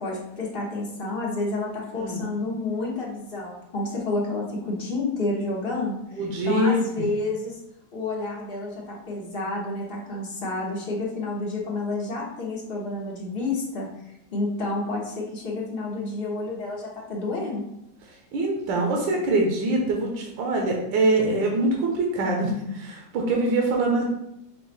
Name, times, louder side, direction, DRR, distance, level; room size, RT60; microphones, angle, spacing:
voice 1, 0.0-7.6 7.9-13.9 14.3-17.6, left 2 dB, 40° left, -3 dB, 0.9 m, -30 dB
voice 2, 1.9-2.2 6.2-6.8 18.3-24.0, right 2 dB, 80° right, 0 dB, 1.5 m, -24 dB
5.0 x 2.4 x 3.9 m, 0.81 s
omnidirectional pair, 2.0 m